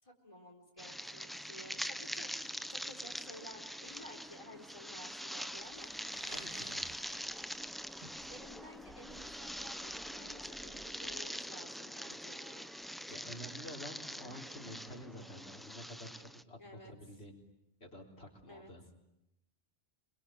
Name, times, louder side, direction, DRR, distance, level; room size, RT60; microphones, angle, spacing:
voice 1, 0.0-5.9 8.3-12.7 16.6-16.9 18.5-18.7, left 1 dB, 30° left, 2 dB, 4.6 m, -54 dB
sound 1, 0.8-16.4, equal, ahead, 0.8 m, -44 dB
Crumpling crinkling, 1.7-13.2, right 1 dB, 50° right, 4.0 m, -61 dB
sound 2, 5.5-11.4, left 1 dB, 60° left, 2.6 m, -63 dB
voice 2, 6.3-6.9 13.1-16.6 16.8-17.4 17.8-18.9, equal, 75° left, 1 dB, 4.1 m, -49 dB
26.0 x 24.0 x 9.2 m, 0.86 s
omnidirectional pair, 1.1 m